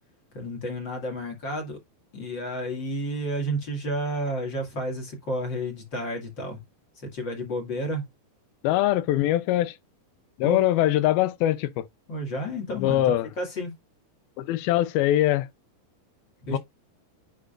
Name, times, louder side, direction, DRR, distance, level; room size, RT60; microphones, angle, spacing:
voice 1, 0.3-1.8 2.1-6.6 7.0-8.0 10.4-10.6 12.1-13.0 13.4-13.7 16.5-16.6, equal, 35° left, 2.3 m, -31 dB
voice 2, 8.6-9.8 10.4-11.9 12.7-13.3 14.4-15.5 16.5-16.6, left 14 dB, 90° left, 2.6 m, -22 dB
10.0 x 4.0 x 2.5 m
omnidirectional pair, 4.2 m